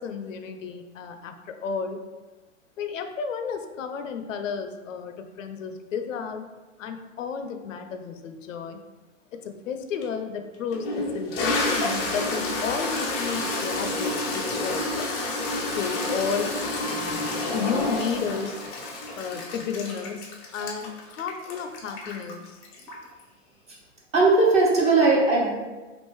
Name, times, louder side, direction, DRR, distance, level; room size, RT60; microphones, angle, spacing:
voice 1, 0.0-2.0 2.8-6.5 6.8-8.8 9.3-15.1 15.7-16.5 17.5-18.6 19.2-22.6, left 6 dB, 85° left, 7 dB, 0.5 m, -32 dB
Toilet flush, 10.0-10.1 10.7-23.2, left 2 dB, 20° left, 0.3 m, -29 dB
voice 2, 24.1-25.5, right 3 dB, 15° right, -3 dB, 0.6 m, -19 dB
3.5 x 2.5 x 3.1 m, 1.2 s
hypercardioid pair, 125°, 38 cm